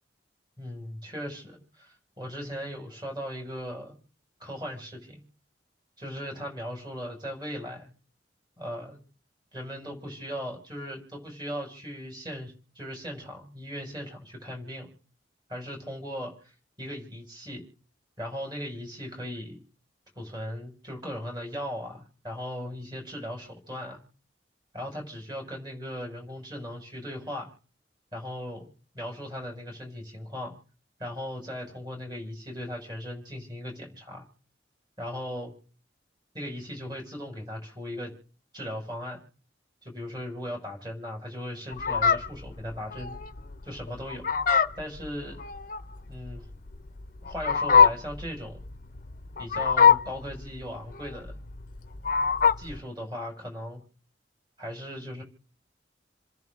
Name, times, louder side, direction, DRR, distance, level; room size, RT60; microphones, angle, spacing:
voice 1, 0.6-4.0 4.4-5.2 6.0-7.9 8.6-9.0 9.5-14.9 15.5-16.5 16.8-17.6 18.2-19.6 20.2-24.0 24.7-27.5 28.1-28.7 28.9-30.6 31.0-34.2 35.0-35.5 36.3-38.1 38.5-39.2 39.8-43.2 43.6-44.2 44.8-45.4 46.1-46.4 47.3-48.6 49.4-51.4 52.6-53.8 54.6-55.2, equal, 25° right, 1 dB, 5.9 m, -38 dB
Fowl, 41.7-52.8, left 6 dB, 50° left, 0.7 m, -24 dB
29.0 x 10.5 x 3.7 m, 0.42 s
head